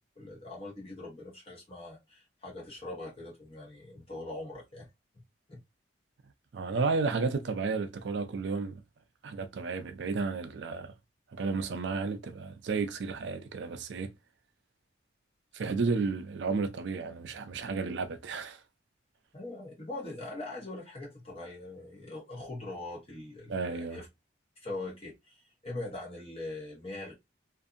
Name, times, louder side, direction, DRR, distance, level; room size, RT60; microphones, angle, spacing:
voice 1, 0.1-4.9 5.5-5.6 6.7-6.9 19.3-24.1 24.6-27.1, left 2 dB, 30° left, 1.2 m, -42 dB
voice 2, 6.5-8.8 9.2-10.9 11.3-14.1 15.5-18.6 23.5-24.0, right 4 dB, 65° right, 0.4 m, -32 dB
2.6 x 2.5 x 2.4 m
head